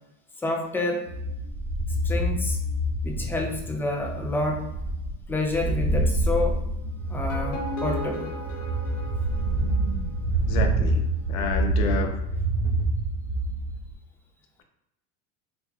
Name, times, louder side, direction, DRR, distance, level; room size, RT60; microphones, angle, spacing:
voice 1, 0.4-1.1 2.0-2.6 3.0-4.7 5.3-6.6 7.1-8.4, left 2 dB, 5° left, 1 dB, 0.3 m, -28 dB
sound 1, 1.1-13.9, right 1 dB, 40° right, 0.8 m, -27 dB
sound 2, 7.1-10.2, equal, 50° left, 1.0 m, -36 dB
voice 2, 10.5-11.0 11.3-12.2, left 5 dB, 90° left, 5 dB, 0.7 m, -29 dB
3.3 x 3.2 x 2.3 m, 0.87 s
supercardioid pair, 115°, 40 cm